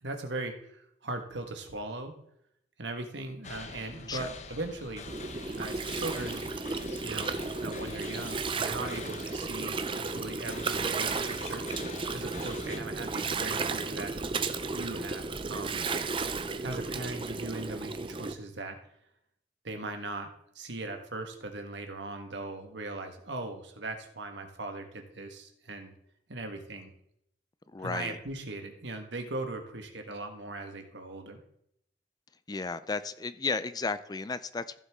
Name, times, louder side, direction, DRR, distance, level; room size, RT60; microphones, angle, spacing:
voice 1, 0.0-2.1 2.8-5.0 5.6-6.4 7.0-11.6 12.1-14.1 14.7-15.8 16.6-18.8 19.6-20.3 20.5-25.9 26.3-26.9 27.8-31.4, right 2 dB, 85° right, 5 dB, 1.5 m, -39 dB
sound 1, 3.4-12.8, left 4 dB, 40° left, 0.8 m, -45 dB
Gurgling, 5.1-18.3, right 4 dB, 30° right, 0.5 m, -34 dB
voice 2, 27.7-28.2 32.5-34.8, left 4 dB, 20° left, 14 dB, 0.4 m, -34 dB
15.0 x 7.2 x 3.6 m, 0.74 s
head